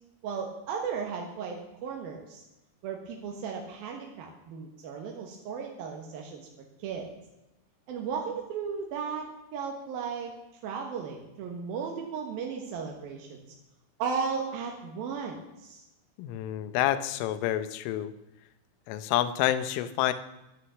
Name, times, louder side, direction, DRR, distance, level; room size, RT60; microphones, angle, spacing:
voice 1, 0.2-2.4 2.8-6.5 6.8-7.1 7.9-10.3 10.6-13.4 14.0-15.8, right 6 dB, 65° right, 1 dB, 2.5 m, -35 dB
voice 2, 16.2-18.1 18.9-20.1, left 13 dB, 80° left, 12 dB, 3.3 m, -28 dB
13.0 x 11.0 x 7.0 m, 0.92 s
omnidirectional pair, 6.0 m